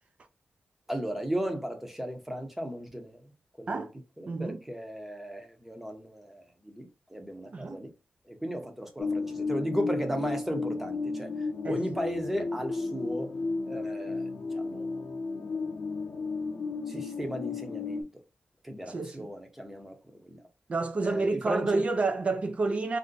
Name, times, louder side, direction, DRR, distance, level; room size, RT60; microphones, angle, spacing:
voice 1, 0.9-3.2 3.6-3.8 4.2-7.9 8.3-13.3 13.7-14.9 16.9-18.1 18.6-20.4 21.0-21.8, equal, 5° right, 0.7 m, -36 dB
voice 2, 4.3-4.6 7.5-7.8 11.6-11.8 18.9-19.3 20.7-23.0, right 3 dB, 35° right, 0.4 m, -29 dB
sound 1, 9.0-18.0, left 3 dB, 45° left, 0.6 m, -33 dB
2.5 x 2.1 x 3.7 m
wide cardioid pair, 145°, 4 cm